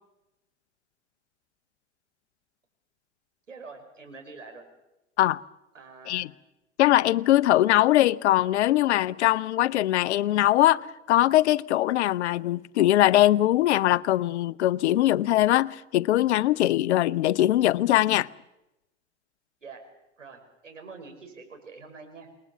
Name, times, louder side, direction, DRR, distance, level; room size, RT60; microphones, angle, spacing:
voice 1, 3.5-4.6 5.7-6.3 19.6-19.9 20.2-22.3, right 4 dB, 85° right, 6.1 m, -45 dB
voice 2, 6.8-18.3, left 14 dB, 65° left, 0.8 m, -21 dB
28.5 x 20.5 x 7.2 m
figure-of-eight pair, 85°, 37 cm